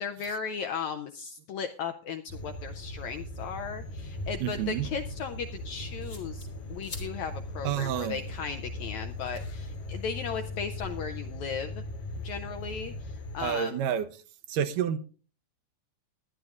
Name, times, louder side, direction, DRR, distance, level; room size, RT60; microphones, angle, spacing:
voice 1, 0.0-11.8 12.2-13.8, left 6 dB, 80° left, 7 dB, 1.7 m, -36 dB
sound 1, 2.3-13.5, left 1 dB, 60° left, 3.2 m, -39 dB
sound 2, 4.0-10.9, left 2 dB, 30° left, 1.6 m, -50 dB
voice 2, 4.4-4.9 7.6-8.3 13.4-14.1 14.5-15.0, right 9 dB, 80° right, 9 dB, 2.3 m, -29 dB
19.5 x 10.5 x 2.5 m, 0.36 s
omnidirectional pair, 4.0 m